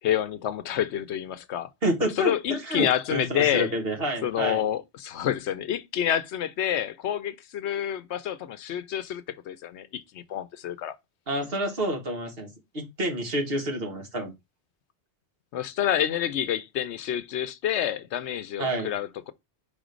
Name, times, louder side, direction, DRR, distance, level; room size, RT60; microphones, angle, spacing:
voice 1, 0.0-1.7 2.0-3.7 4.2-11.0 15.5-19.3, left 10 dB, 75° left, 0.9 m, -28 dB
voice 2, 1.8-4.6 11.3-12.5 12.7-14.3 18.6-18.9, right 1 dB, 55° right, 1.8 m, -28 dB
5.0 x 3.7 x 5.1 m
omnidirectional pair, 1.2 m